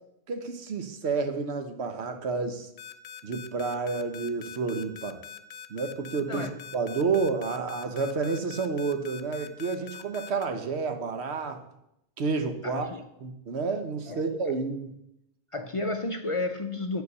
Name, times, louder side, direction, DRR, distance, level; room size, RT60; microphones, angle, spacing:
voice 1, 0.3-2.7 3.2-5.2 5.7-11.6 12.2-12.9 13.2-14.9, right 4 dB, 90° right, 7 dB, 1.2 m, -30 dB
sound 1, 2.8-10.5, left 8 dB, 80° left, 0.9 m, -43 dB
voice 2, 12.6-13.1 14.1-14.2 15.5-17.0, left 2 dB, 45° left, 6 dB, 0.4 m, -32 dB
9.6 x 4.5 x 6.7 m, 0.81 s
omnidirectional pair, 1.1 m